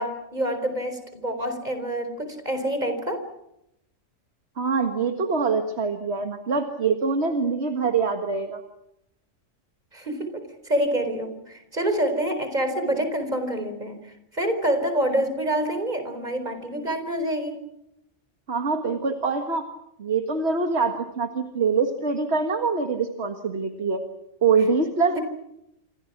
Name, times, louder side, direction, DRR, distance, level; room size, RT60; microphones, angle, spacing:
voice 1, 0.0-3.3 9.9-17.6 25.1-25.2, right 1 dB, 35° right, 9 dB, 4.4 m, -27 dB
voice 2, 4.6-8.6 18.5-19.6 20.0-24.0 24.4-25.2, right 4 dB, 55° right, 5 dB, 2.0 m, -24 dB
28.5 x 25.5 x 6.0 m, 0.83 s
omnidirectional pair, 1.3 m